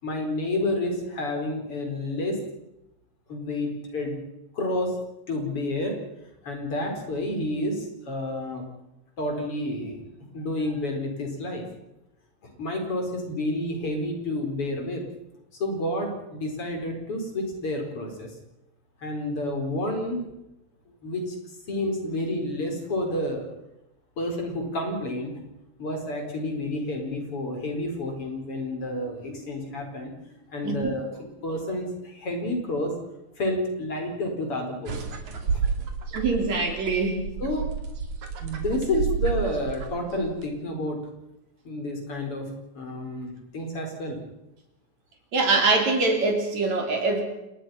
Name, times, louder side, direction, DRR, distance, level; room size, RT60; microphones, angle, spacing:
voice 1, 0.0-2.4 3.3-4.2 4.5-5.0 5.3-6.0 6.4-8.7 9.2-10.0 10.3-11.6 12.4-15.0 15.6-18.3 19.0-20.2 21.0-21.4 21.7-23.5 24.2-25.3 25.8-30.1 30.5-32.9 33.4-35.2 37.4-37.7 38.4-41.0 41.7-42.5 42.8-44.2, left 1 dB, 50° left, 3 dB, 5.4 m, -30 dB
sound 1, 34.9-40.4, right 5 dB, 90° right, 4.1 m, -30 dB
voice 2, 36.1-37.3 45.3-47.2, right 3 dB, 70° right, 3 dB, 5.4 m, -23 dB
30.0 x 19.5 x 5.7 m, 0.89 s
omnidirectional pair, 3.3 m